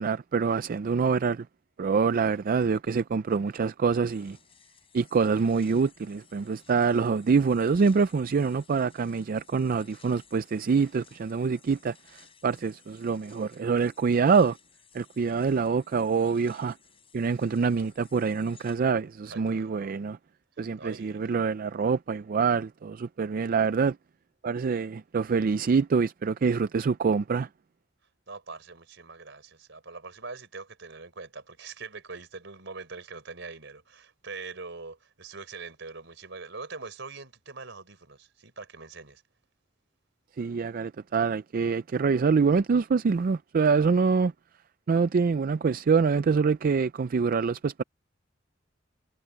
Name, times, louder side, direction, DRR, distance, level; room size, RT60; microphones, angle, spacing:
voice 1, 0.0-1.5 1.8-4.4 4.9-14.6 14.9-16.8 17.1-20.2 20.6-24.0 24.4-27.5 40.4-44.3 44.9-47.8, right 5 dB, 45° right, 0.4 m, -25 dB
sound 1, 4.0-18.8, left 7 dB, 30° left, 4.4 m, -59 dB
voice 2, 19.3-19.9 20.8-21.2 28.3-39.2, right 4 dB, 65° right, 4.6 m, -43 dB
head